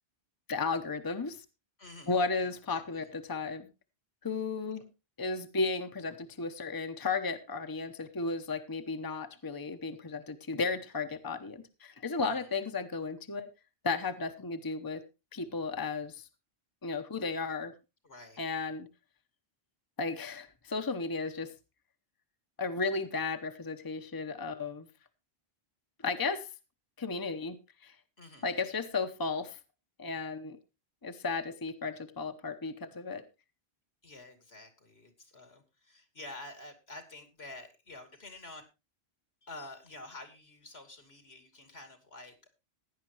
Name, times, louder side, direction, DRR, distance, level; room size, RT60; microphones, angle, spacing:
voice 1, 0.5-1.4 2.1-3.7 4.2-4.9 5.2-13.5 13.8-15.0 15.3-16.2 16.8-17.7 18.4-18.9 20.0-21.5 22.6-24.9 26.0-26.5 27.0-27.6 27.8-27.9 28.4-29.6 30.0-30.6 31.0-33.2, left 4 dB, 20° left, 8 dB, 0.9 m, -34 dB
voice 2, 1.8-3.1 12.2-12.5 18.0-18.4 28.2-28.5 34.0-38.6 39.4-42.5, left 2 dB, 80° left, 7 dB, 2.8 m, -49 dB
16.0 x 10.5 x 3.0 m, 0.26 s
omnidirectional pair, 1.0 m